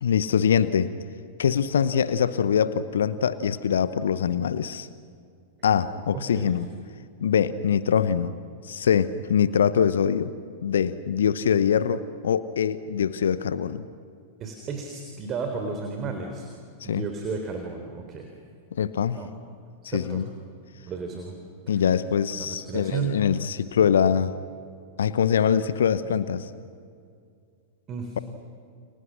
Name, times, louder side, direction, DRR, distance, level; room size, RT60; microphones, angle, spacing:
voice 1, 0.0-0.9 1.4-4.9 5.6-6.7 7.2-8.4 8.6-10.3 10.6-13.9 16.8-17.0 18.8-19.2 19.9-20.3 21.7-24.3 25.0-26.5, left 7 dB, 70° left, 14 dB, 1.0 m, -23 dB
voice 2, 6.1-6.6 14.4-16.5 16.8-18.3 19.2-19.3 19.8-20.2 20.9-21.4 21.7-21.8 22.3-23.2 27.9-28.2, right 5 dB, 30° right, 4 dB, 3.7 m, -33 dB
30.0 x 30.0 x 6.5 m, 2.3 s
figure-of-eight pair, 95°, 0 cm